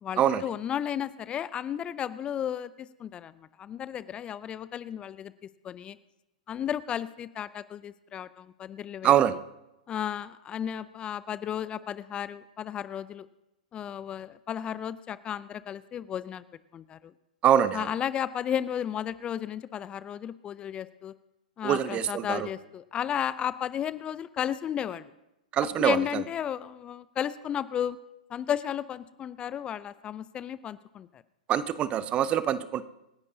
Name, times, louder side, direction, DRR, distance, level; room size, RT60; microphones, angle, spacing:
voice 1, 0.0-5.3 5.6-6.0 6.5-9.1 9.9-13.3 13.7-16.4 16.7-17.1 17.7-21.1 21.6-25.1 25.8-28.0 28.3-31.2, left 9 dB, 25° left, 16 dB, 0.5 m, -33 dB
voice 2, 9.0-9.4 17.4-17.9 21.6-22.5 25.5-26.0 31.5-32.8, right 10 dB, 25° right, 15 dB, 0.6 m, -24 dB
27.0 x 10.5 x 2.8 m, 0.92 s
hypercardioid pair, 110°, 4 cm